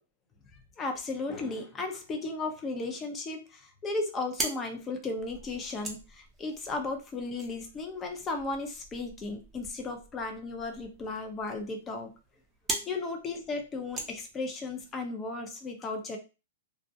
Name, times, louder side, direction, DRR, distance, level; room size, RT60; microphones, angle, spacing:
voice 1, 0.8-12.1 12.9-16.2, left 3 dB, 20° left, 4 dB, 0.6 m, -35 dB
sound 1, 4.0-14.9, right 2 dB, 15° right, 0.6 m, -42 dB
2.4 x 2.1 x 2.6 m, 0.30 s
hypercardioid pair, 130°, 0 cm